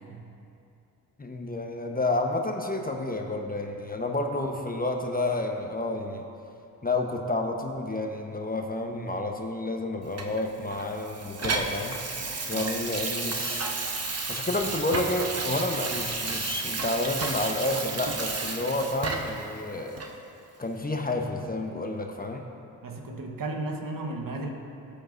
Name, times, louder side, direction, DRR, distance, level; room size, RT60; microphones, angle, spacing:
voice 1, 1.2-6.2 6.8-12.0 12.5-13.7 14.3-20.0 20.6-22.4, left 2 dB, 20° left, 3 dB, 1.0 m, -30 dB
Water tap faucet / Sink (filling or washing), 10.2-19.5 20.0-20.1, right 3 dB, 40° right, 1.1 m, -32 dB
voice 2, 22.8-24.5, right 2 dB, 60° right, 2 dB, 1.2 m, -34 dB
13.0 x 8.8 x 2.6 m, 2.7 s
supercardioid pair, 45°, 39 cm